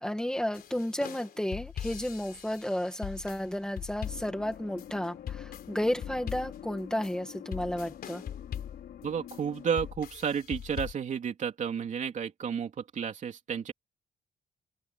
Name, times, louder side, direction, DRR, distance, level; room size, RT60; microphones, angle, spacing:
voice 1, 0.0-8.2, left 1 dB, 5° left, 1.8 m, -32 dB
sound 1, 0.5-10.9, left 9 dB, 65° left, 3.7 m, -41 dB
sound 2, 4.0-9.9, left 10 dB, 90° left, 3.4 m, -47 dB
voice 2, 9.0-13.7, right 7 dB, 50° right, 3.2 m, -32 dB
open air
wide cardioid pair, 175°, 17 cm